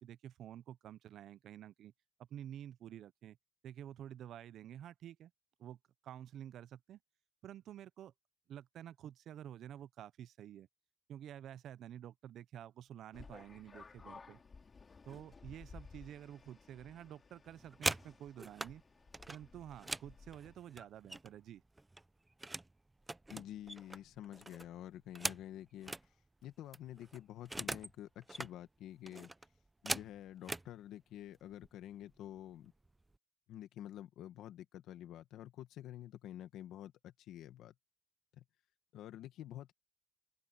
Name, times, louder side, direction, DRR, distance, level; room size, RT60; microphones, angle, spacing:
voice 1, 0.0-1.9 2.3-3.4 3.6-5.3 5.6-5.8 6.0-7.0 7.4-8.1 8.5-10.7 11.1-14.4 15.1-18.8 19.3-21.6, right 10 dB, 75° right, 0.5 m, -50 dB
sound 1, 13.1-20.6, left 4 dB, 35° left, 3.4 m, -57 dB
sound 2, 17.5-18.7 19.1-21.5 21.8-22.7 23.0-26.1 26.4-26.5 26.7-27.9 28.2-28.5 29.1-30.7 31.5-31.7 32.0-32.3 32.6-33.2, right 2 dB, 15° right, 0.6 m, -42 dB
voice 2, 23.3-25.9 26.4-29.3 29.8-32.7 33.5-37.7 38.4-38.5 38.9-39.7, left 12 dB, 85° left, 1.6 m, -49 dB
open air
cardioid pair, 90°, 0 cm